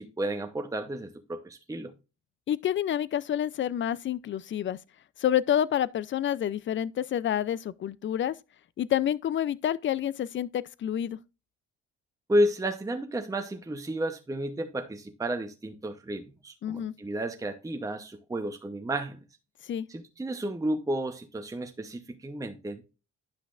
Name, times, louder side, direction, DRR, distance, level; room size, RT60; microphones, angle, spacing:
voice 1, 0.0-1.9 12.3-19.2 19.9-22.8, right 1 dB, 10° right, 0.8 m, -32 dB
voice 2, 2.5-4.8 5.2-8.4 8.8-11.2 16.6-16.9 19.6-19.9, left 10 dB, 40° left, 0.5 m, -28 dB
10.5 x 5.8 x 2.4 m
cardioid pair, 90°, 30 cm